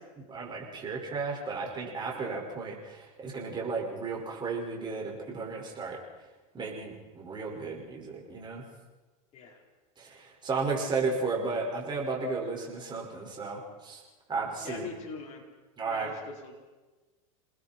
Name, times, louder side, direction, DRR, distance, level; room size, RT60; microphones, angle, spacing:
voice 1, 0.3-6.0 6.5-8.6 10.0-14.0 14.3-14.9 15.8-16.1, right 4 dB, 25° right, -1 dB, 5.8 m, -34 dB
voice 2, 14.6-15.4 15.9-16.5, left 5 dB, 40° left, 0 dB, 4.7 m, -42 dB
28.5 x 20.0 x 4.6 m, 1.2 s
hypercardioid pair, 115°, 18 cm